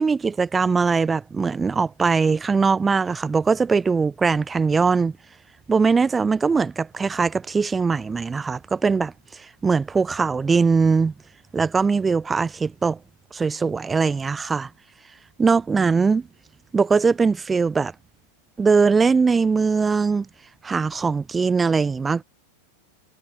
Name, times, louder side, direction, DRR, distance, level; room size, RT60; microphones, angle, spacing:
voice 1, 0.0-5.1 5.7-11.1 11.5-13.0 13.3-14.7 15.4-16.3 16.7-17.9 18.6-20.3 20.6-22.2, right 5 dB, 15° right, 3.1 m, -21 dB
figure-of-eight pair, 90°, 0 cm